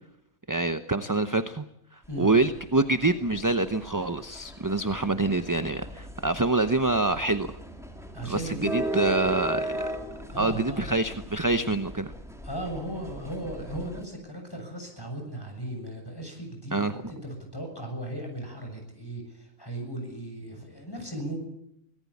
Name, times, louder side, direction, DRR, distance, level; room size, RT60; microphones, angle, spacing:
voice 1, 0.5-1.6 1.9-7.5 8.2-9.9 10.4-12.1 16.7-17.0, right 2 dB, 15° right, 10 dB, 0.8 m, -26 dB
sound 1, 2.0-14.0, right 1 dB, ahead, 3.0 m, -38 dB
voice 2, 8.1-8.8 10.3-10.9 12.4-21.4, right 1 dB, 15° left, 3 dB, 7.2 m, -37 dB
25.0 x 18.5 x 8.6 m, 0.78 s
omnidirectional pair, 1.4 m